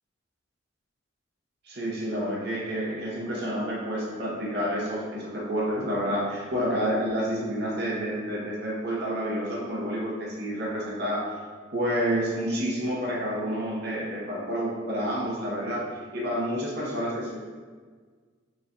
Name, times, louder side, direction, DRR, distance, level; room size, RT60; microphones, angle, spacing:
voice 1, 1.6-11.4 11.7-15.9 16.1-17.4, equal, 55° right, -5 dB, 0.9 m, -29 dB
4.9 x 3.1 x 2.6 m, 1.5 s
head